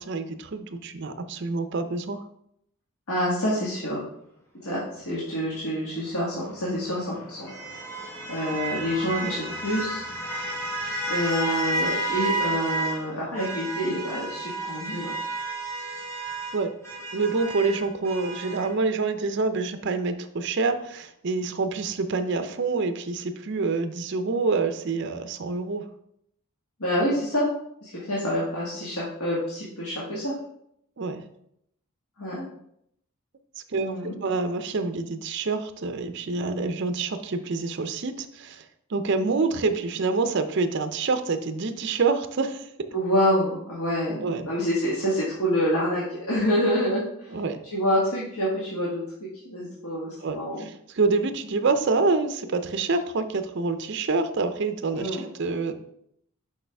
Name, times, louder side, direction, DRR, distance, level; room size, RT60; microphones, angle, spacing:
voice 1, 0.0-2.2 16.5-16.8 17.1-25.9 31.0-31.2 33.7-38.6 38.9-42.9 44.2-44.5 47.3-47.6 50.2-55.8, right 3 dB, 50° right, 9 dB, 0.5 m, -27 dB
voice 2, 3.1-4.0 4.6-7.8 8.3-10.0 11.1-15.1 26.8-27.5 27.8-30.3 32.2-32.5 33.8-34.2 42.9-47.3 47.7-50.7 54.9-55.3, equal, 90° left, -7 dB, 1.6 m, -27 dB
sound 1, 6.4-13.0 13.3-18.7, right 1 dB, 10° left, 1.3 m, -31 dB
6.5 x 5.4 x 3.4 m, 0.74 s
head